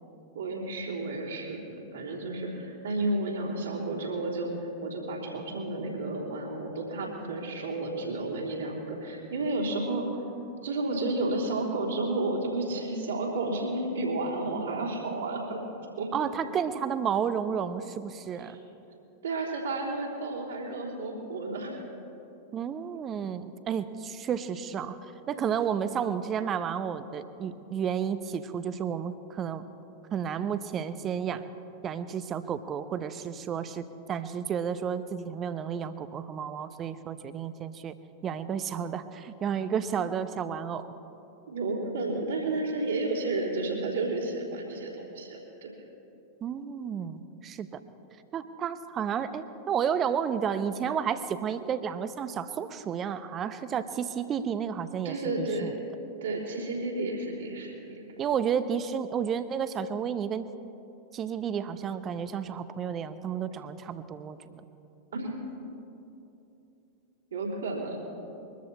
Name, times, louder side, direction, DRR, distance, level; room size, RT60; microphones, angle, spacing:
voice 1, 0.3-4.5 4.8-10.0 10.6-15.6 16.0-16.1 18.4-18.6 19.2-21.8 41.5-45.7 55.0-55.7 56.2-58.1 65.1-65.4 67.3-68.0, right 2 dB, 70° right, -4 dB, 3.6 m, -32 dB
voice 2, 16.1-18.6 22.5-29.6 30.1-31.4 31.8-37.9 38.2-40.9 46.4-47.8 48.3-55.7 58.2-60.5 61.1-64.6, right 7 dB, 30° right, 12 dB, 0.8 m, -32 dB
22.5 x 13.5 x 4.3 m, 2.9 s
figure-of-eight pair, 90°, 0 cm